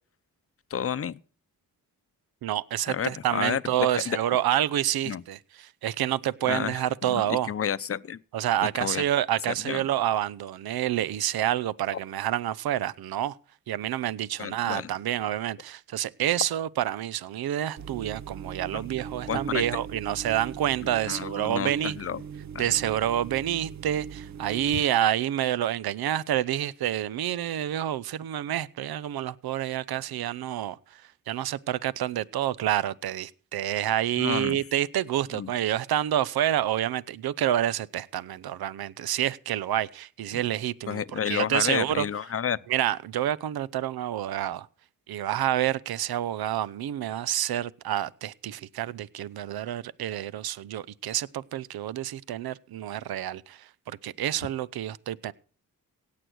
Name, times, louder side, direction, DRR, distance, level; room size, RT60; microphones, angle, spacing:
voice 1, 0.7-1.2 2.9-3.6 3.9-4.2 5.1-5.2 6.5-8.2 8.8-9.0 9.7-9.8 14.4-14.9 18.7-18.8 19.3-19.6 21.1-22.2 22.5-22.6 24.7-24.8 34.2-34.6 35.3-35.5 40.9-42.6, left 8 dB, 40° left, 0.7 m, -30 dB
voice 2, 2.4-7.5 8.3-13.4 13.7-22.0 22.6-31.0 31.3-42.1 42.7-44.7 45.1-55.3, right 12 dB, 80° right, 0.7 m, -28 dB
sound 1, 17.8-24.9, right 6 dB, 50° right, 0.8 m, -39 dB
17.0 x 8.6 x 6.3 m
cardioid pair, 75°, 36 cm